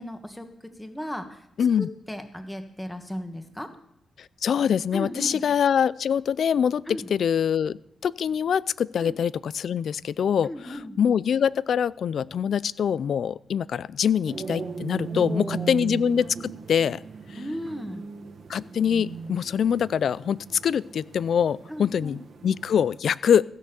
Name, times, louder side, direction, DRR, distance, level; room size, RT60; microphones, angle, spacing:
voice 1, 0.0-1.5 1.8-3.7 4.9-5.4 6.9-7.1 9.0-9.2 10.4-11.0 15.1-15.8 17.3-18.1 21.7-22.2, equal, 10° left, 7 dB, 1.7 m, -36 dB
voice 2, 1.6-1.9 4.2-6.8 7.1-17.0 17.3-17.4 18.5-20.4 20.6-23.4, left 8 dB, 70° left, 21 dB, 0.4 m, -24 dB
sound 1, 14.3-23.0, right 6 dB, 60° right, 1.4 m, -38 dB
15.5 x 6.5 x 6.9 m, 0.74 s
cardioid pair, 75°, 0 cm